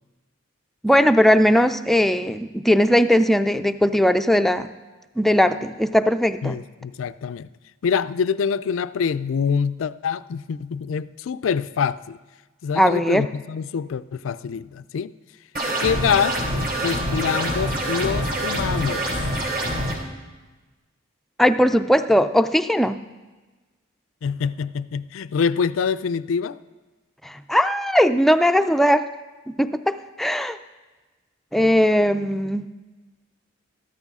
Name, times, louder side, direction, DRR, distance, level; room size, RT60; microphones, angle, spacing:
voice 1, 0.8-4.7 5.2-6.6 12.8-13.2 21.4-23.0 27.2-29.1 29.5-30.6 31.5-32.6, equal, ahead, 9 dB, 0.3 m, -19 dB
voice 2, 6.4-7.5 7.8-12.2 12.6-15.1 15.8-19.2 24.2-26.6, left 6 dB, 75° left, 15 dB, 0.4 m, -25 dB
sound 1, 15.5-19.9, right 1 dB, 50° right, 3.1 m, -25 dB
14.0 x 13.0 x 3.6 m, 1.2 s
head